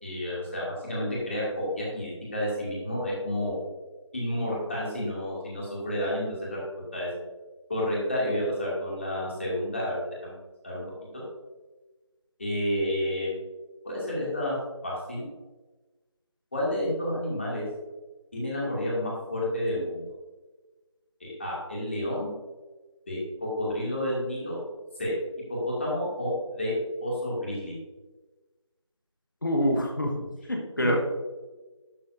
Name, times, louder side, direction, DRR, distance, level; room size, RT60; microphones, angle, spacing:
voice 1, 0.0-3.6 4.1-6.6 6.9-7.1 7.7-10.4 10.6-10.8 12.4-13.3 13.8-14.6 14.8-15.3 16.5-17.7 18.3-20.0 21.2-22.3 23.1-24.6 25.0-25.1 25.5-26.7 27.0-27.7, left 1 dB, 25° left, -6 dB, 2.3 m, -30 dB
voice 2, 29.4-31.0, equal, 40° left, 1 dB, 1.0 m, -26 dB
11.5 x 7.2 x 2.6 m, 1.2 s
figure-of-eight pair, 170°, 16 cm